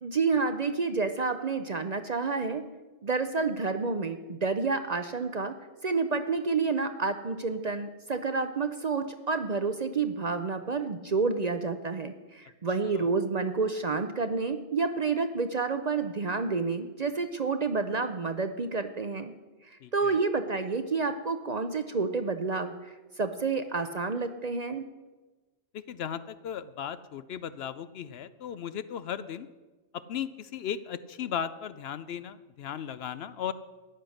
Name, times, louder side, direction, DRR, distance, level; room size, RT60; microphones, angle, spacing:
voice 1, 0.0-2.6 3.0-5.6 5.8-19.3 19.6-24.8, right 4 dB, 45° right, 9 dB, 0.6 m, -29 dB
voice 2, 19.8-20.2 25.7-29.5 29.9-33.5, left 9 dB, 65° left, 14 dB, 0.8 m, -36 dB
13.5 x 9.7 x 6.4 m, 1.2 s
omnidirectional pair, 1.2 m